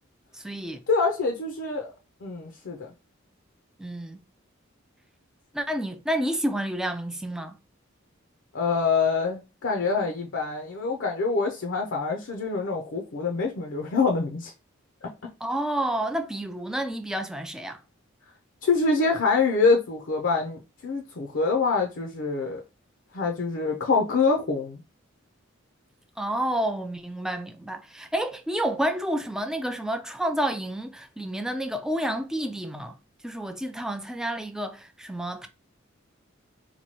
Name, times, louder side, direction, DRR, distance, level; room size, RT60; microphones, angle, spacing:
voice 1, 0.3-0.8 3.8-4.2 5.5-7.6 15.4-17.8 26.2-32.9 33.2-35.5, right 1 dB, 5° right, 0.3 m, -29 dB
voice 2, 0.9-1.9 2.2-2.9 8.5-14.5 18.6-22.6 23.1-24.8, left 4 dB, 60° left, 0.6 m, -25 dB
3.0 x 2.2 x 4.2 m
head